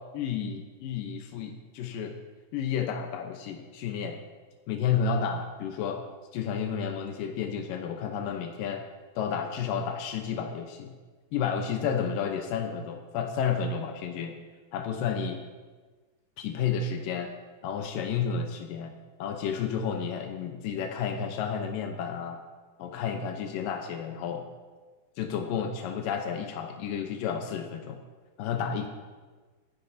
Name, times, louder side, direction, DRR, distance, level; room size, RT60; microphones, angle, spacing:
voice 1, 0.1-2.2 2.5-4.2 4.7-6.0 6.3-8.8 9.2-10.9 11.3-14.4 14.7-15.4 16.4-17.3 17.6-18.9 19.2-22.4 22.8-24.4 25.2-28.0 28.4-28.9, left 7 dB, 85° left, 4 dB, 1.9 m, -31 dB
26.5 x 11.0 x 2.7 m, 1.4 s
omnidirectional pair, 5.2 m